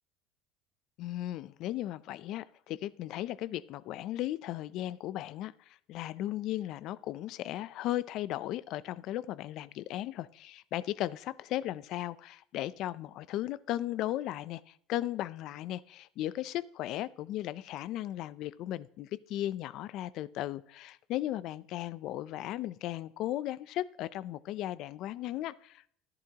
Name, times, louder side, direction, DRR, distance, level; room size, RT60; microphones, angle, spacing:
voice 1, 1.0-25.9, left 14 dB, 45° left, 17 dB, 0.4 m, -36 dB
13.5 x 10.5 x 2.9 m, 0.63 s
cardioid pair, 170°, 0 cm